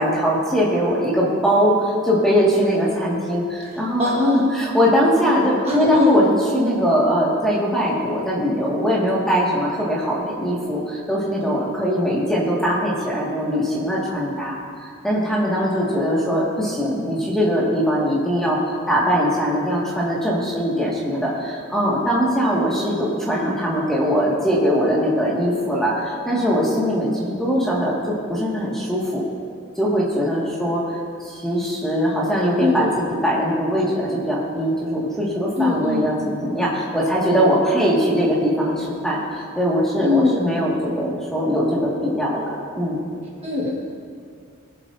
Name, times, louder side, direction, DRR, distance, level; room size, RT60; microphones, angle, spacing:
voice 1, 0.0-18.6 18.9-29.2 29.8-30.8 31.2-43.1, equal, ahead, -6 dB, 1.9 m, -21 dB
voice 2, 4.0-4.5 5.7-6.2 32.6-33.0 35.6-36.1 40.0-40.5 43.4-43.7, left 3 dB, 30° right, -4 dB, 1.5 m, -21 dB
22.5 x 7.6 x 2.7 m, 2.2 s
head